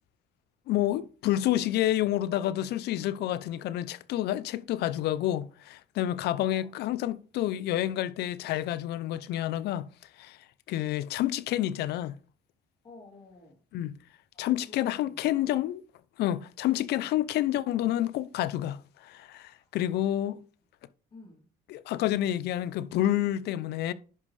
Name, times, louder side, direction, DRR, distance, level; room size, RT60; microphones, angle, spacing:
voice 1, 0.7-9.9 10.2-10.4 10.7-12.1 13.7-13.9 14.4-15.8 16.2-20.4 21.7-23.9, left 13 dB, 75° left, 0.6 m, -29 dB
voice 2, 6.3-6.8 12.8-13.6 14.3-15.4 19.4-19.7 20.1-20.5 21.1-21.5, left 3 dB, 35° left, 3.2 m, -53 dB
10.5 x 5.2 x 3.3 m
cardioid pair, 110°, 17 cm